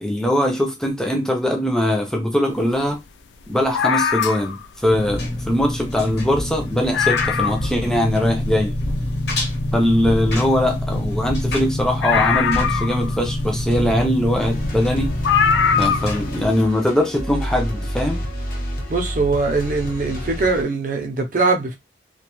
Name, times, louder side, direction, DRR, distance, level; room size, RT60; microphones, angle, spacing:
voice 1, 0.0-3.0 3.5-8.7 9.7-15.1 15.8-18.3, left 1 dB, 5° left, 0.5 m, -21 dB
sound 1, 3.7-4.7 5.7-5.8 6.2-6.3 6.6-6.7 6.9-7.8 8.3-8.4 12.0-13.3 14.4-14.5 15.2-16.2 16.5-16.6, left 7 dB, 90° left, 0.3 m, -21 dB
Engine, 4.9-16.5, left 1 dB, 75° left, 0.9 m, -26 dB
sound 2, 14.4-20.6, equal, 50° left, 0.8 m, -30 dB
voice 2, 18.9-21.7, right 3 dB, 50° right, 0.6 m, -21 dB
2.4 x 2.2 x 3.0 m
head